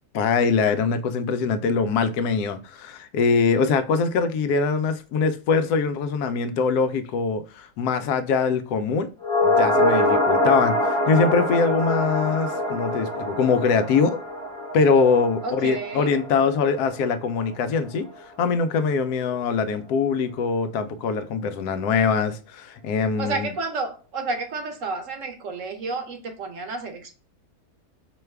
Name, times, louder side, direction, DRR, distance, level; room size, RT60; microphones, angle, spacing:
voice 1, 0.1-9.1 9.4-14.2 14.7-18.1 18.4-23.5, left 5 dB, 80° left, 1.1 m, -23 dB
sound 1, 9.2-17.7 18.0-18.1, left 1 dB, 20° left, 1.1 m, -25 dB
voice 2, 15.4-16.1 23.2-27.1, right 3 dB, 60° right, 1.1 m, -31 dB
4.7 x 2.3 x 3.2 m
omnidirectional pair, 1.6 m